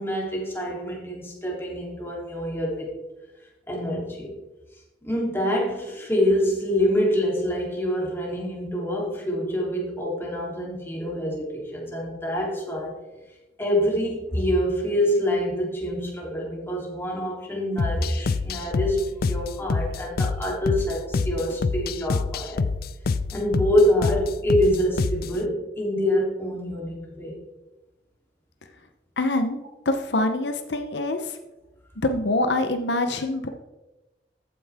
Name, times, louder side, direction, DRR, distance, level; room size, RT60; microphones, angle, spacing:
voice 1, 0.0-2.9 3.7-4.3 5.0-12.9 13.6-22.6 23.3-27.4, equal, 15° left, -3 dB, 3.2 m, -26 dB
sound 1, 17.8-25.4, left 4 dB, 60° left, 0.4 m, -27 dB
voice 2, 29.2-29.6 29.9-31.3 32.0-33.5, left 2 dB, 80° left, 7 dB, 0.9 m, -25 dB
14.5 x 9.4 x 3.6 m, 1.1 s
head